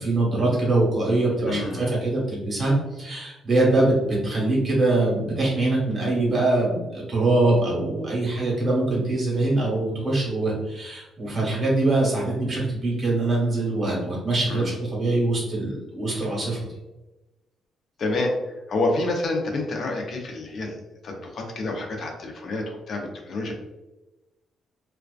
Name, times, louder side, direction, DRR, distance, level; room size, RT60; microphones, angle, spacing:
voice 1, 0.0-16.6, right 2 dB, 40° right, -4 dB, 1.1 m, -23 dB
voice 2, 1.5-1.8 14.5-14.7 18.0-23.5, left 2 dB, 55° left, 1 dB, 0.5 m, -28 dB
2.4 x 2.2 x 2.3 m, 1.0 s
cardioid pair, 90°, 0 cm